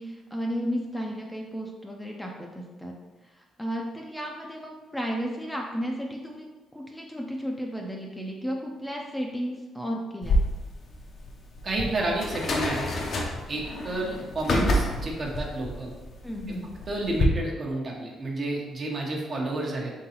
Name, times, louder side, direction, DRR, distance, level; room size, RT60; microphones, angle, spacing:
voice 1, 0.0-2.9 3.2-10.4 16.2-16.7, equal, 5° left, 0 dB, 0.5 m, -33 dB
sound 1, 10.2-17.3, left 1 dB, 55° left, 0.7 m, -29 dB
voice 2, 11.6-12.9 13.5-15.9 16.9-19.9, right 2 dB, 45° right, -1 dB, 1.0 m, -30 dB
3.8 x 3.8 x 2.9 m, 1.2 s
cardioid pair, 90°, 0 cm